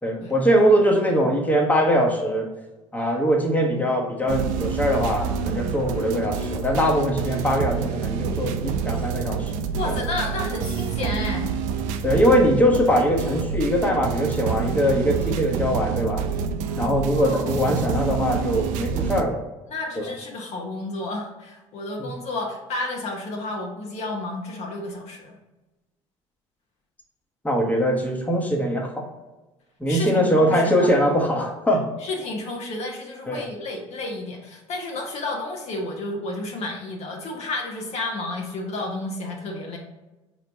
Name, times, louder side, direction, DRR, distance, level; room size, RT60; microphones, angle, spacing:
voice 1, 0.0-2.5 2.9-9.5 9.8-9.9 12.0-16.3 16.8-19.4 20.0-20.1 22.0-22.1 27.4-29.0 29.8-31.8 33.3-33.5, equal, 10° left, 0 dB, 1.2 m, -22 dB
sound 1, 4.3-19.2, right 6 dB, 65° right, 0.5 m, -27 dB
voice 2, 9.7-11.5 16.8-17.8 19.7-25.4 29.9-30.9 32.0-39.8, left 2 dB, 50° left, 0 dB, 1.0 m, -31 dB
4.8 x 3.1 x 3.4 m, 1.1 s
hypercardioid pair, 65°, 14 cm